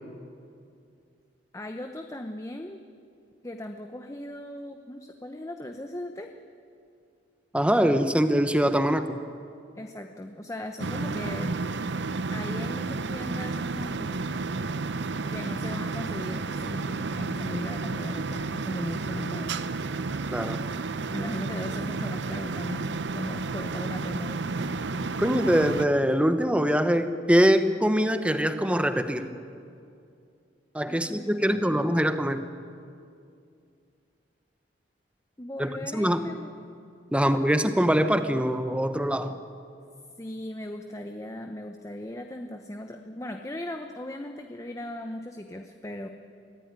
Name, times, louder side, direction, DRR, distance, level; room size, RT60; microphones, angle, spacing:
voice 1, 1.5-2.8 3.4-6.3 9.8-11.5 12.3-14.2 15.3-19.6 20.0-20.1 21.1-24.7 30.9-31.8 35.4-36.5 37.1-37.3 40.2-46.1, left 1 dB, 15° left, 5 dB, 0.9 m, -38 dB
voice 2, 7.5-9.2 20.3-20.6 25.2-29.3 30.7-32.4 35.6-36.2 37.1-39.3, equal, 5° right, 9 dB, 1.0 m, -23 dB
sound 1, 10.8-25.9, right 3 dB, 70° right, 0.7 m, -31 dB
23.5 x 15.5 x 9.6 m, 2.4 s
head